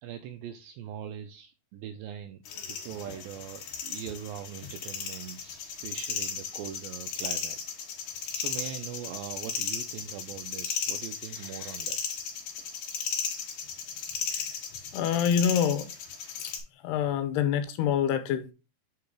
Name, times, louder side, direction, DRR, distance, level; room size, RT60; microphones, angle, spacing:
voice 1, 0.0-7.6 8.0-12.0, right 10 dB, 85° right, 2.1 m, -41 dB
sound 1, 2.5-16.6, left 6 dB, 65° left, 2.8 m, -35 dB
voice 2, 14.9-15.9 16.4-16.5 16.8-18.5, left 8 dB, 85° left, 2.9 m, -26 dB
8.4 x 4.0 x 3.6 m
omnidirectional pair, 4.7 m